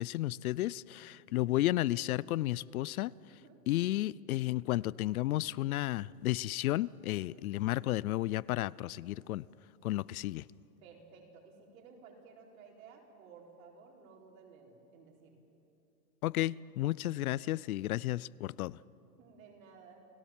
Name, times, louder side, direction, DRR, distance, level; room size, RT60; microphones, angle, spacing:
voice 1, 0.0-3.1 3.7-9.4 9.8-10.5 16.2-18.8, left 16 dB, 65° left, 0.5 m, -32 dB
voice 2, 3.3-3.6 7.3-7.4 10.8-15.4 19.2-20.0, right 5 dB, 60° right, 4.7 m, -56 dB
29.5 x 16.5 x 7.4 m
supercardioid pair, 160°, 47 cm